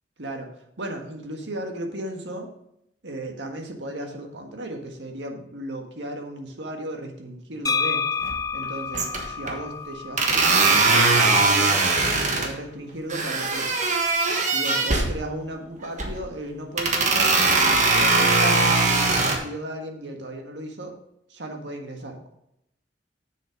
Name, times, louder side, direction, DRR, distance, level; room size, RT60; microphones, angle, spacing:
voice 1, 0.8-2.5 3.0-8.0 8.5-11.8 12.3-13.8 14.4-20.9 21.3-22.3, right 1 dB, 85° right, 3 dB, 1.6 m, -35 dB
sound 1, 7.7-11.4, left 5 dB, 20° left, 0.4 m, -30 dB
sound 2, 8.2-8.6 8.9-9.5 10.2-12.5 13.1-15.1 15.8-16.2 16.8-19.4, right 3 dB, 45° right, 1.4 m, -20 dB
7.5 x 6.8 x 5.2 m, 0.78 s
head